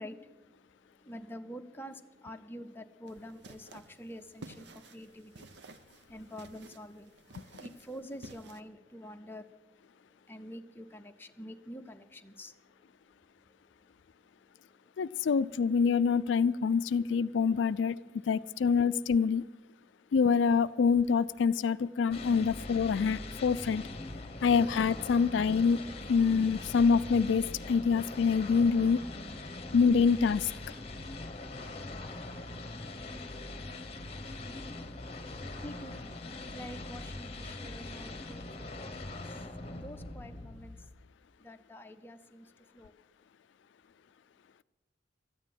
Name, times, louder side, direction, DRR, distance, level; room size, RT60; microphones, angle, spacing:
voice 1, 0.0-15.2 19.8-20.1 35.5-36.2 36.4-40.9 41.4-42.9, equal, 10° left, 6 dB, 0.7 m, -49 dB
sound 1, 3.1-8.6, right 2 dB, 65° right, 0.8 m, -52 dB
voice 2, 15.0-18.0 18.3-19.4 20.1-23.8 24.4-25.8 26.1-29.0 29.7-30.5, left 5 dB, 80° left, 15 dB, 0.4 m, -26 dB
sound 2, 22.1-41.1, left 2 dB, 35° left, 1.0 m, -42 dB
13.5 x 9.7 x 7.5 m, 1.1 s
head